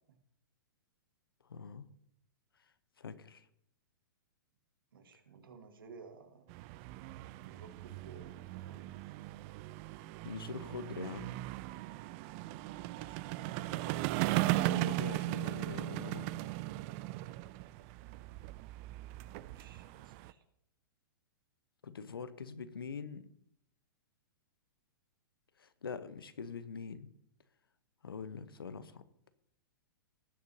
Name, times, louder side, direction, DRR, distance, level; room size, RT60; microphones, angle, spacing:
voice 1, 1.4-1.9 3.0-3.5 10.2-11.4 14.6-16.3 21.8-23.3 25.6-27.1 28.0-29.0, left 5 dB, 85° left, 13 dB, 0.9 m, -44 dB
voice 2, 4.9-6.5 7.4-8.9 13.1-14.0 17.6-17.9 19.4-20.4, right 5 dB, 70° right, 7 dB, 1.6 m, -55 dB
sound 1, 6.5-20.3, right 17 dB, 40° right, 0.4 m, -38 dB
18.5 x 8.0 x 2.7 m, 0.74 s
hypercardioid pair, 115°, 12 cm